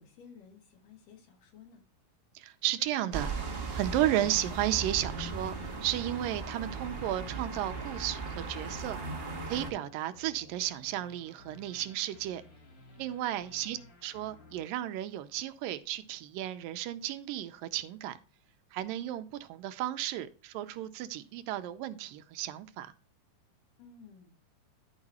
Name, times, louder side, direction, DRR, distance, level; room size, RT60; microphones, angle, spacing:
voice 1, 0.0-1.8 13.7-13.8 23.8-24.4, left 6 dB, 70° left, 3.1 m, -54 dB
voice 2, 2.4-5.5 5.8-9.1 9.5-12.4 13.0-18.2 18.7-22.9, right 13 dB, 85° right, 2.3 m, -34 dB
sound 1, 3.1-9.7, right 3 dB, 50° right, 0.6 m, -37 dB
sound 2, 6.6-15.7, left 2 dB, 55° left, 3.2 m, -56 dB
11.5 x 5.0 x 4.1 m
omnidirectional pair, 4.0 m